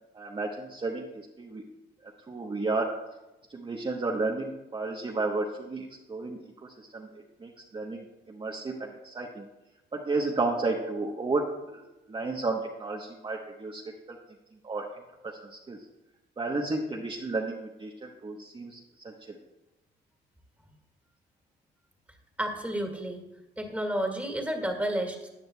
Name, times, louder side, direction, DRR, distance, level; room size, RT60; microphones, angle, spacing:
voice 1, 0.1-1.6 2.3-3.0 3.5-6.4 6.8-7.1 7.4-9.4 9.9-13.8 14.1-14.2 14.6-14.9 15.2-15.8 16.4-18.8 19.0-19.4, right 3 dB, 25° right, -1 dB, 1.0 m, -32 dB
voice 2, 22.4-23.2 23.6-25.3, right 1 dB, 5° right, 3 dB, 2.0 m, -31 dB
15.0 x 9.1 x 2.3 m, 1.0 s
cardioid pair, 90°, 20 cm